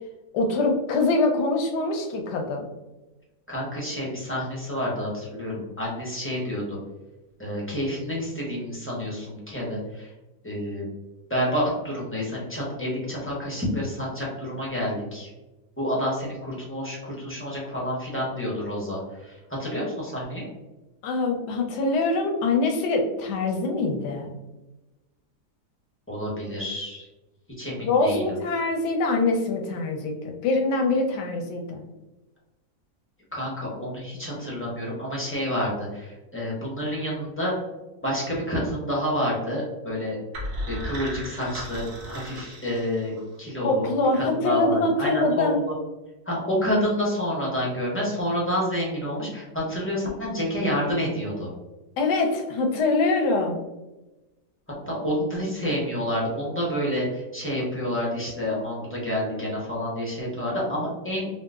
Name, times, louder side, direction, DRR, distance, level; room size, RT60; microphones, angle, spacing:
voice 1, 0.3-2.6 21.0-24.3 27.8-31.8 43.6-45.6 52.0-53.6, left 3 dB, 90° left, 3 dB, 1.2 m, -24 dB
voice 2, 3.5-6.8 7.4-10.1 10.4-10.8 11.3-15.3 15.8-19.3 19.6-20.4 26.1-27.1 27.6-28.2 33.3-37.5 38.0-40.2 40.7-45.7 46.3-51.5 54.9-61.3, equal, 15° left, -5 dB, 0.5 m, -29 dB
sound 1, 40.3-43.4, equal, 70° right, 1.2 m, -35 dB
3.8 x 2.4 x 2.3 m, 1.1 s
omnidirectional pair, 1.8 m